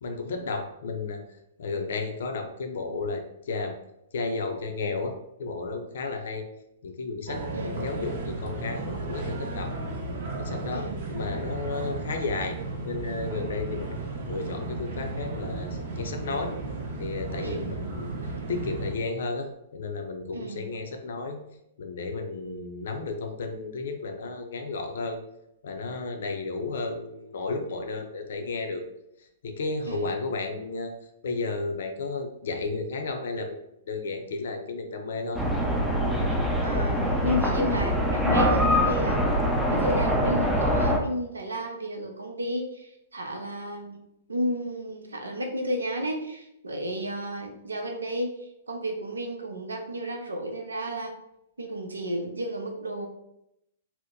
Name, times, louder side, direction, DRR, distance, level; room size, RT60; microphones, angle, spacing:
voice 1, 0.0-3.8 4.1-6.4 6.8-9.7 10.3-12.6 12.8-16.5 17.0-18.1 18.5-21.4 21.8-25.2 25.6-28.8 29.2-30.9 31.2-35.4, left 3 dB, 65° left, 5 dB, 0.5 m, -33 dB
sound 1, 7.3-18.9, right 3 dB, 55° right, 0.7 m, -34 dB
voice 2, 7.5-7.8 10.7-11.0 17.4-17.9 20.3-20.7 29.8-30.1 36.6-39.2 39.7-44.0 44.3-48.3 48.7-51.1 51.6-53.1, equal, 85° right, 3 dB, 0.6 m, -32 dB
sound 2, 35.3-41.0, equal, 5° right, 0.5 m, -24 dB
2.8 x 2.1 x 3.6 m, 0.82 s
hypercardioid pair, 115°, 0 cm